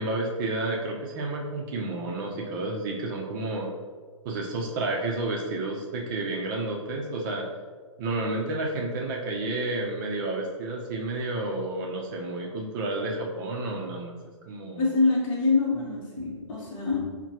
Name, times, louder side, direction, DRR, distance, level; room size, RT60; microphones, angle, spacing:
voice 1, 0.0-3.7 4.2-7.5 8.0-14.2 14.5-14.8, right 2 dB, 40° right, -1 dB, 0.6 m, -30 dB
voice 2, 14.8-17.2, left 3 dB, 30° left, -7 dB, 0.9 m, -25 dB
5.7 x 2.2 x 2.8 m, 1.5 s
hypercardioid pair, 130°, 17 cm